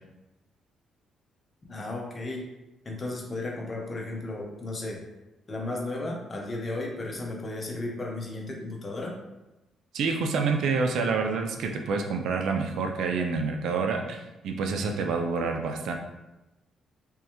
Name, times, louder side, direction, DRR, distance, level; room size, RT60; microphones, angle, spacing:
voice 1, 1.7-2.4 2.8-5.0 5.5-9.1, left 2 dB, 30° left, -1 dB, 0.9 m, -34 dB
voice 2, 9.9-15.9, right 4 dB, 75° right, 3 dB, 0.4 m, -28 dB
3.5 x 3.1 x 3.0 m, 1.0 s
cardioid pair, 90°, 0 cm